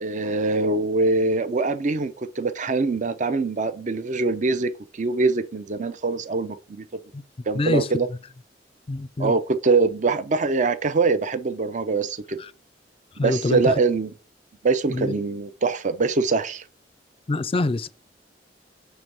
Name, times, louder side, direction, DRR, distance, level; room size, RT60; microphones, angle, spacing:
voice 1, 0.0-6.9 7.5-8.1 9.2-12.4 13.2-14.1 14.6-16.6, right 3 dB, 45° right, 0.6 m, -23 dB
voice 2, 7.5-7.9 8.9-9.3 12.4-12.5 13.2-13.7 14.9-15.1 17.3-17.9, left 2 dB, 30° left, 0.4 m, -25 dB
6.7 x 3.4 x 6.0 m
head